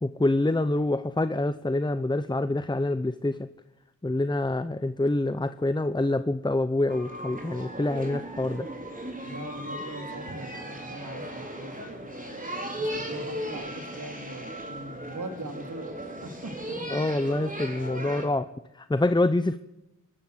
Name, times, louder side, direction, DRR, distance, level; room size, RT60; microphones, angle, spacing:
voice 1, 0.0-3.5 4.0-8.7 16.9-18.5 18.7-19.6, left 2 dB, 15° left, 13 dB, 0.8 m, -26 dB
sound 1, 6.9-18.3, right 1 dB, 25° right, 4.4 m, -37 dB
voice 2, 9.2-17.0 18.1-18.2, right 1 dB, 80° right, 6 dB, 2.8 m, -41 dB
26.5 x 13.5 x 8.0 m, 0.92 s
wide cardioid pair, 70°, 31 cm